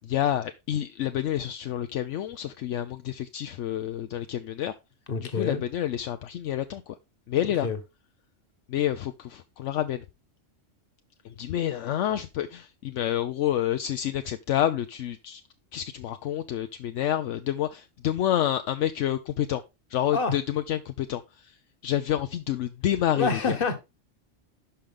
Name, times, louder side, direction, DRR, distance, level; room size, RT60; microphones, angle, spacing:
voice 1, 0.0-4.7 5.3-7.0 7.3-7.7 8.7-10.0 11.4-15.4 15.7-19.6 19.9-21.2 21.8-23.6, left 11 dB, 75° left, 0.9 m, -28 dB
voice 2, 5.1-5.6 7.6-7.8 20.1-20.4 23.2-23.8, left 4 dB, 45° left, 1.5 m, -27 dB
11.5 x 5.1 x 3.7 m
omnidirectional pair, 1.3 m